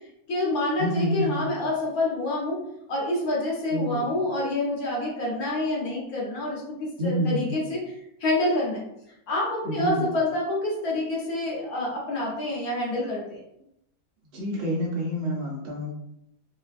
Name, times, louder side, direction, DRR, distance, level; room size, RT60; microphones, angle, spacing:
voice 1, 0.3-2.6 2.9-7.9 8.2-8.8 9.3-13.4, left 2 dB, 65° left, -4 dB, 1.3 m, -27 dB
voice 2, 0.8-1.6 3.7-4.1 7.0-7.7 9.6-10.1 14.3-15.9, equal, 55° right, -4 dB, 0.8 m, -28 dB
3.1 x 2.2 x 2.4 m, 0.80 s
omnidirectional pair, 1.7 m